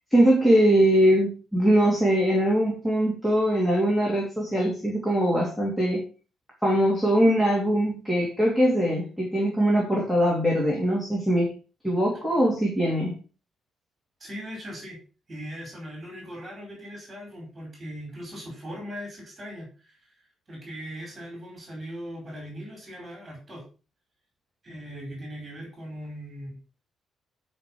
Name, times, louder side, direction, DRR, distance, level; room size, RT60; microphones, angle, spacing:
voice 1, 0.1-6.0 6.6-11.5 11.8-13.2, equal, 5° left, -4 dB, 3.0 m, -22 dB
voice 2, 14.2-15.0 15.3-20.1 20.5-23.6 24.6-26.6, equal, 15° right, -1 dB, 4.6 m, -39 dB
11.0 x 5.4 x 6.3 m, 0.35 s
cardioid pair, 175°, 0 cm